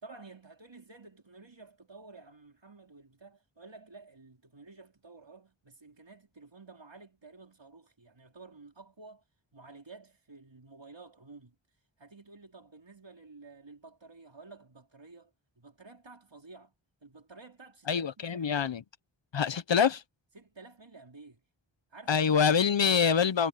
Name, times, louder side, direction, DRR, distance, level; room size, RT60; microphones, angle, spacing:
voice 1, 0.0-9.2 9.5-11.6 12.0-16.7 17.0-18.7 20.3-21.4 21.9-22.9, right 3 dB, 60° right, 3.7 m, -52 dB
voice 2, 17.9-18.8 19.3-20.0 22.1-23.5, left 7 dB, 60° left, 0.7 m, -25 dB
wide cardioid pair, 50°, 50 cm